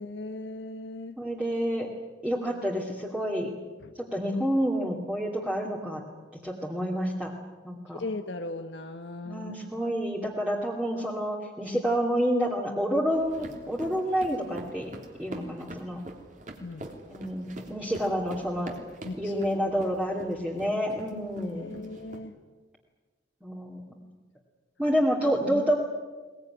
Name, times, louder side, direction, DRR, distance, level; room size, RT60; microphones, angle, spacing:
voice 1, 0.0-1.2 3.8-3.9 7.9-9.6 16.6-16.9 19.0-19.6 21.1-22.3, left 2 dB, 75° left, 7 dB, 1.1 m, -38 dB
voice 2, 1.2-1.9 2.2-3.5 4.1-6.0 6.4-7.3 7.6-8.0 9.2-14.9 15.2-16.0 17.1-18.7 19.2-21.8 23.4-23.9 24.8-25.8, equal, 5° right, -4 dB, 2.5 m, -28 dB
sound 1, 13.1-22.2, right 1 dB, 45° right, 3.1 m, -45 dB
22.0 x 20.0 x 9.9 m, 1.3 s
head